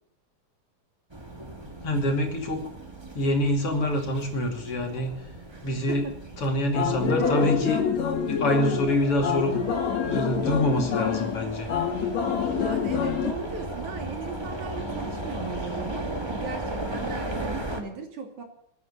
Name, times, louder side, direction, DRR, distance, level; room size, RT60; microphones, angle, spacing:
sound 1, 1.1-17.8, right 1 dB, 10° right, 1.5 m, -37 dB
voice 1, 1.8-2.6 3.1-5.3 5.6-6.1 6.4-7.8 8.3-9.6 10.0-11.7, left 1 dB, 50° left, 3 dB, 3.4 m, -26 dB
voice 2, 5.5-6.2 6.9-7.5 12.5-18.4, right 5 dB, 75° right, 3 dB, 4.2 m, -38 dB
sound 2, 6.4-6.5 6.7-13.3, left 7 dB, 65° left, 3.2 m, -27 dB
20.5 x 9.5 x 6.9 m, 0.71 s
omnidirectional pair, 3.4 m